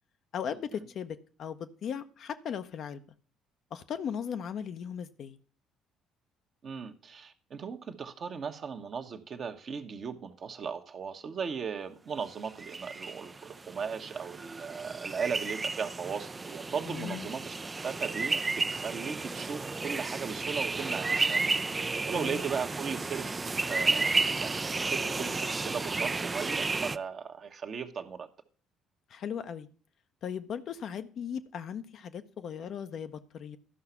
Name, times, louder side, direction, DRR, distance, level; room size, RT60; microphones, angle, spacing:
voice 1, 0.3-3.0 3.7-5.4 16.9-17.3 22.1-22.4 29.1-29.7 30.2-33.6, left 8 dB, 55° left, 0.7 m, -37 dB
voice 2, 6.6-17.5 17.8-21.4 21.7-23.3 23.7-28.3, right 6 dB, 45° right, 1.1 m, -37 dB
sound 1, 12.4-27.0, right 3 dB, 25° right, 0.4 m, -32 dB
12.5 x 5.7 x 5.7 m
figure-of-eight pair, 50°, 0 cm